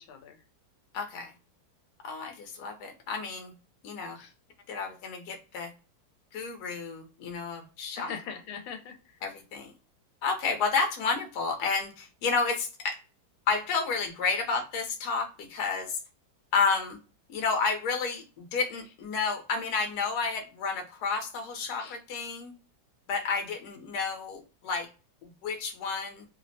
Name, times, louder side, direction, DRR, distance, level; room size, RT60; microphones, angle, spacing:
voice 1, 0.9-1.3 2.0-3.5 3.8-4.3 4.7-5.7 6.3-8.1 9.2-9.7 10.2-13.0 13.5-16.0 16.5-17.0 17.3-22.5 23.1-24.9 25.2-26.3, left 4 dB, 65° left, 4 dB, 1.1 m, -31 dB
voice 2, 8.0-9.2 14.5-14.6 21.8-22.0, left 7 dB, 80° left, 5 dB, 1.3 m, -41 dB
3.3 x 2.0 x 2.5 m, 0.34 s
omnidirectional pair, 2.2 m